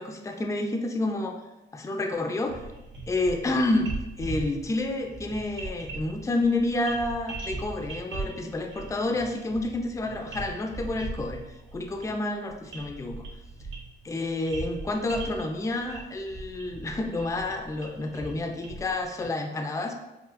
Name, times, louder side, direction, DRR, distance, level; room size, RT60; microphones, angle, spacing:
voice 1, 0.0-1.4 1.7-2.6 3.1-3.9 4.2-13.3 14.0-19.9, left 2 dB, 15° left, 3 dB, 0.4 m, -29 dB
sound 1, 2.5-19.3, right 2 dB, 70° right, 1.1 m, -40 dB
5.5 x 2.4 x 2.5 m, 1.0 s
cardioid pair, 90°, 20 cm